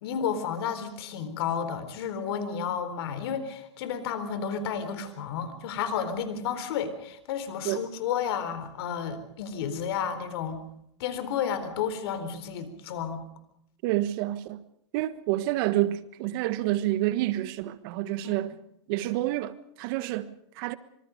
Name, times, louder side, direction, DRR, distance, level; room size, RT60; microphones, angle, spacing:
voice 1, 0.0-10.6 11.0-13.2 18.2-18.5, left 7 dB, 60° left, 3.9 m, -32 dB
voice 2, 13.8-14.6 14.9-18.6 18.9-20.8, right 15 dB, 50° right, 1.5 m, -28 dB
25.5 x 24.5 x 5.1 m
hypercardioid pair, 115°, 15 cm